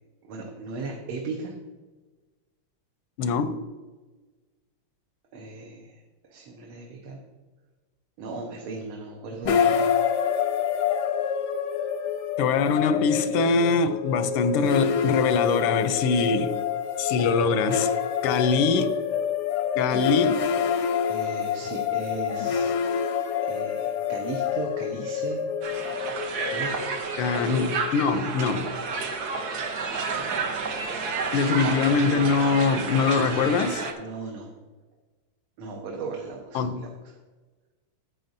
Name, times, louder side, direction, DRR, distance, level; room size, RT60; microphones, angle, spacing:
voice 1, 0.3-1.5 5.3-6.0 6.3-7.2 8.2-9.9 21.1-22.8 23.4-25.4 26.4-26.7 34.0-34.5 35.6-36.9, right 3 dB, 75° right, 1.8 m, -36 dB
voice 2, 3.2-3.6 12.4-16.5 17.0-17.9 18.2-18.9 19.7-20.4 27.2-28.7 31.3-33.9 36.5-36.9, left 5 dB, 85° left, 1.5 m, -23 dB
sound 1, 9.4-28.6, left 7 dB, 70° left, 1.0 m, -27 dB
Crowd, 25.6-33.9, right 4 dB, 55° right, 1.2 m, -30 dB
11.0 x 8.0 x 2.6 m
omnidirectional pair, 2.4 m